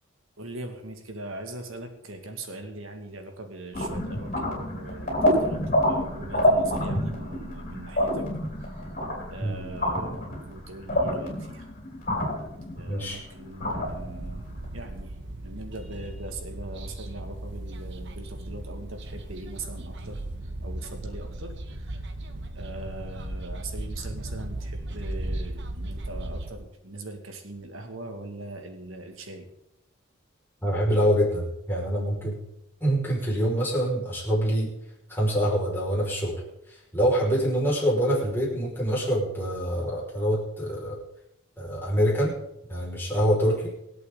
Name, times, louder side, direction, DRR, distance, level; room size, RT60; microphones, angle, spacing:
voice 1, 0.4-8.2 9.3-11.7 12.7-15.2 15.4-20.2 20.6-22.0 22.5-29.5, right 2 dB, 85° right, 5 dB, 2.2 m, -41 dB
sound 1, 3.7-14.9, equal, 40° left, 5.5 m, -28 dB
voice 2, 12.9-13.2 30.6-32.4 32.8-34.7 35.1-36.3 36.9-41.0 41.6-42.3 42.7-43.7, equal, 10° left, -5 dB, 5.6 m, -25 dB
sound 2, 13.8-26.5, right 1 dB, 60° right, 1.3 m, -36 dB
25.0 x 8.4 x 4.0 m, 0.82 s
head